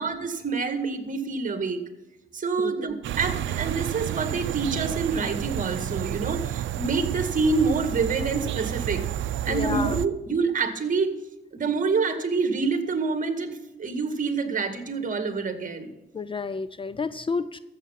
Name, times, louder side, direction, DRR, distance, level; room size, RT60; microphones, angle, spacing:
voice 1, 0.0-1.8 2.3-9.0 9.5-11.2 11.5-15.9, right 4 dB, 40° right, 9 dB, 2.0 m, -27 dB
voice 2, 2.6-3.0 9.5-10.0 16.1-17.6, left 4 dB, 25° left, 15 dB, 0.5 m, -30 dB
sound 1, 3.0-10.1, right 12 dB, 75° right, 0.6 m, -30 dB
13.5 x 8.1 x 5.8 m, 0.98 s
cardioid pair, 90°, 20 cm